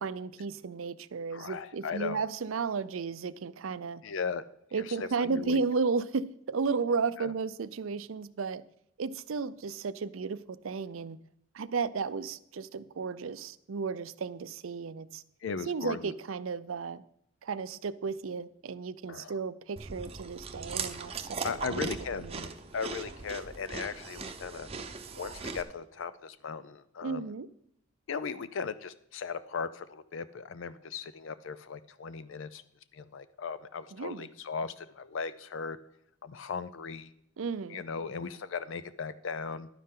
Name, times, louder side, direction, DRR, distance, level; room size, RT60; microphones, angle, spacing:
voice 1, 0.0-4.0 4.7-8.6 9.0-11.2 11.5-15.2 15.7-17.0 17.4-21.9 22.2-22.5 27.0-27.5 33.9-34.3 37.4-37.8, right 5 dB, 75° right, 16 dB, 0.5 m, -34 dB
voice 2, 1.3-2.2 4.0-4.4 4.8-5.6 7.2-7.3 15.4-16.1 19.1-19.3 21.4-24.7 25.1-27.2 28.1-32.6 32.9-35.8 36.2-37.1 37.7-39.7, left 5 dB, 65° left, 14 dB, 0.5 m, -37 dB
Chewing mastication, 19.8-25.6, right 4 dB, 30° right, 0.8 m, -39 dB
11.5 x 9.7 x 3.7 m, 0.74 s
head